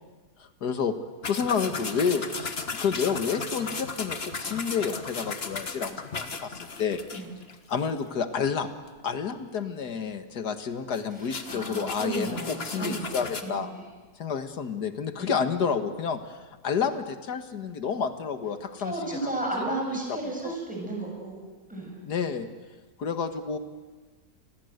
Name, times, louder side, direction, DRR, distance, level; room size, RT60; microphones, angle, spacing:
voice 1, 0.4-0.9 1.3-7.0 7.7-8.7 9.0-13.7 14.2-16.4 16.6-19.3 20.1-20.2 20.4-20.6 22.0-22.5 23.0-23.6, left 6 dB, 70° left, 8 dB, 2.1 m, -29 dB
sound 1, 1.2-8.0 8.4-8.6 8.9-9.0 10.9-13.4, left 4 dB, 35° left, 1.7 m, -36 dB
voice 2, 11.1-13.7 15.2-15.3 18.8-21.4 21.7-22.0, right 2 dB, 5° right, -1 dB, 7.2 m, -33 dB
29.0 x 21.0 x 8.1 m, 1.3 s
omnidirectional pair, 1.8 m